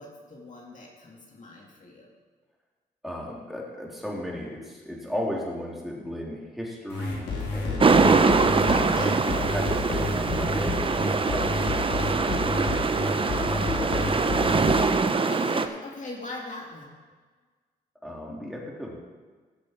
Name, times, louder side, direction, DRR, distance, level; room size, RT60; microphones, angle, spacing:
voice 1, 0.0-2.1 8.7-9.2 15.3-16.9, left 2 dB, 45° left, -2 dB, 2.2 m, -39 dB
voice 2, 3.0-9.0 9.3-12.5 13.5-15.0 18.0-19.0, left 1 dB, ahead, -3 dB, 3.1 m, -36 dB
sound 1, 6.9-14.8, left 3 dB, 85° left, 2.8 m, -30 dB
sound 2, 7.8-15.7, right 4 dB, 30° right, 0.7 m, -23 dB
16.5 x 6.4 x 4.5 m, 1.4 s
cardioid pair, 70°, 18 cm